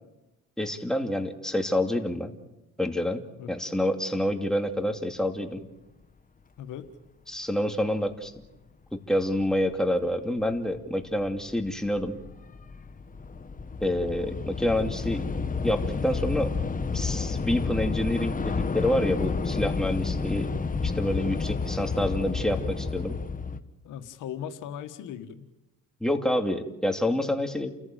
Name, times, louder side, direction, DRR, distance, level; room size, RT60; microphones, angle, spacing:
voice 1, 0.6-2.3 2.8-5.6 7.3-8.3 8.9-12.1 13.8-15.3 15.6-16.5 16.9-20.5 20.8-23.1 26.0-27.7, left 1 dB, ahead, 4 dB, 2.6 m, -27 dB
voice 2, 6.6-6.9 23.8-25.5, left 9 dB, 85° left, 8 dB, 1.7 m, -38 dB
Train / Subway metro underground, 10.5-10.8 11.0-23.6, left 4 dB, 25° left, 1.4 m, -30 dB
29.5 x 14.5 x 9.1 m, 1.0 s
cardioid pair, 90°, 30 cm